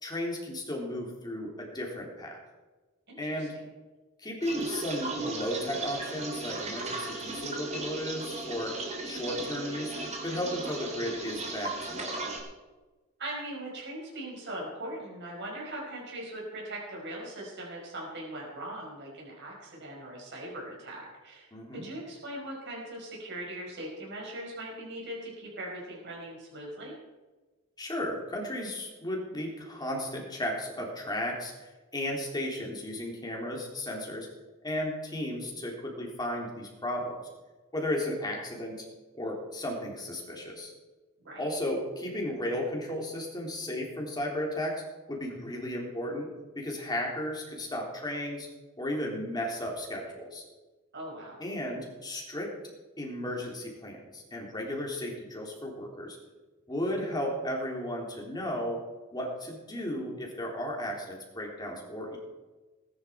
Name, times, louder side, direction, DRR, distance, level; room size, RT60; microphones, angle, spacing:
voice 1, 0.0-2.4 3.2-3.5 4.2-8.7 9.0-9.9 10.2-12.3 21.5-21.9 27.8-34.3 34.6-37.2 37.7-38.8 39.1-40.7 41.4-44.8 45.1-46.3 46.5-48.5 48.8-50.4 51.4-52.5 53.0-56.2 56.7-58.8 59.1-62.2, left 1 dB, 20° left, -1 dB, 3.4 m, -34 dB
voice 2, 3.1-3.5 13.2-26.9 41.2-41.5 50.9-51.4, right 1 dB, 55° right, -3 dB, 5.1 m, -40 dB
sound 1, 4.4-12.4, right 3 dB, 35° right, 3.0 m, -36 dB
19.5 x 11.0 x 4.6 m, 1.2 s
head